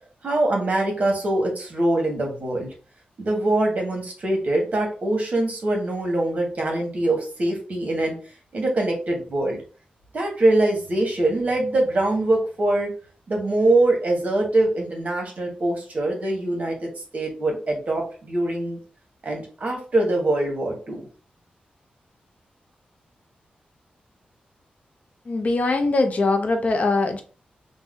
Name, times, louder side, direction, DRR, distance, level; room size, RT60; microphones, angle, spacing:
voice 1, 0.2-2.7 3.2-8.1 8.5-9.6 10.1-12.9 13.3-18.8 19.2-21.1, right 2 dB, 50° right, 1 dB, 1.0 m, -23 dB
voice 2, 25.3-27.2, left 3 dB, 50° left, 5 dB, 0.5 m, -22 dB
2.6 x 2.1 x 3.4 m, 0.39 s
wide cardioid pair, 105°, 3 cm